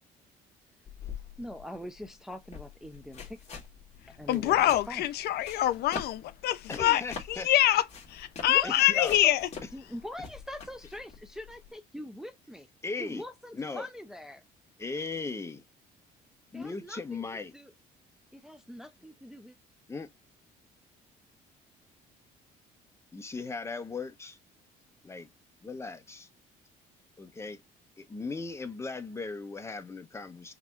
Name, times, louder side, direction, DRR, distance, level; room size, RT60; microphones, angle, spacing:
sound 1, 0.9-11.7, left 6 dB, 40° left, 2.0 m, -45 dB
voice 1, 1.4-3.6 4.1-4.6 4.9-5.1 8.5-9.3 9.7-12.7 13.0-14.4 16.5-17.7 18.3-19.6, left 1 dB, 5° right, 0.5 m, -43 dB
voice 2, 4.3-7.0 7.3-9.4, left 13 dB, 70° left, 0.5 m, -25 dB
voice 3, 6.7-7.5 8.6-9.2 12.8-13.2 13.5-13.9 14.8-15.6 16.5-17.5 19.9-20.1 23.1-24.4 25.0-25.3 25.6-26.3 27.2-27.6 28.0-30.5, left 4 dB, 15° left, 1.0 m, -38 dB
5.8 x 2.8 x 2.4 m
cardioid pair, 110°, 17 cm